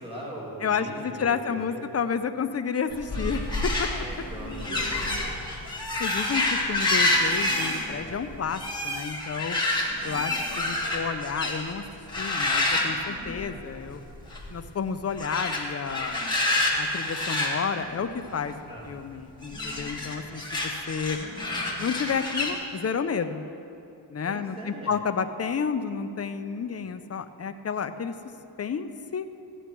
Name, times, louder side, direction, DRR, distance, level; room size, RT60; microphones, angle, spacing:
voice 1, 0.0-1.8 3.9-5.0 8.5-8.6 9.8-10.2 18.7-18.9 21.1-21.6 24.2-24.9, right 1 dB, 10° right, -5 dB, 2.9 m, -41 dB
voice 2, 0.6-3.4 3.8-3.9 6.0-9.6 10.0-11.8 12.2-14.0 14.5-16.2 16.8-21.2 21.8-23.4 24.1-28.1 28.6-29.3, left 6 dB, 35° left, 9 dB, 0.6 m, -31 dB
sound 1, 2.9-11.7 12.1-13.8 14.1-14.5 15.1-18.5 19.4-22.5, left 2 dB, 10° left, 1.8 m, -28 dB
15.0 x 10.0 x 4.6 m, 2.7 s
wide cardioid pair, 115°, 44 cm